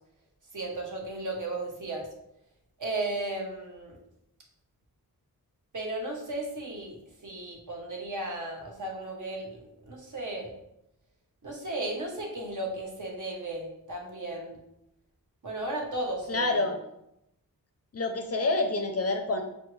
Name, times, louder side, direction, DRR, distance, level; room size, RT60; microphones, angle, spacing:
voice 1, 0.5-2.1 2.8-4.0 5.7-10.5 11.4-14.5 15.4-16.5, right 2 dB, 55° right, 0 dB, 0.9 m, -35 dB
voice 2, 16.3-16.8 17.9-19.4, left 2 dB, 40° left, 4 dB, 0.5 m, -27 dB
6.0 x 2.1 x 3.0 m, 0.82 s
wide cardioid pair, 110°, 37 cm